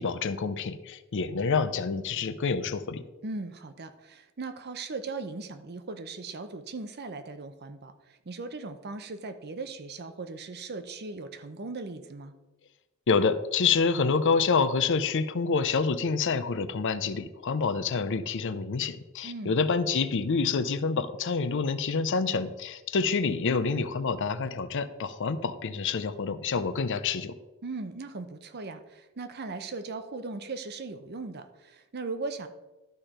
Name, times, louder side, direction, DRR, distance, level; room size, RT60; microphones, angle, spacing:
voice 1, 0.0-3.0 13.1-27.3, left 5 dB, 60° left, 13 dB, 0.6 m, -27 dB
voice 2, 3.2-12.3 19.2-19.6 27.6-32.5, right 3 dB, 50° right, 10 dB, 0.7 m, -38 dB
12.0 x 4.4 x 5.0 m, 1.1 s
head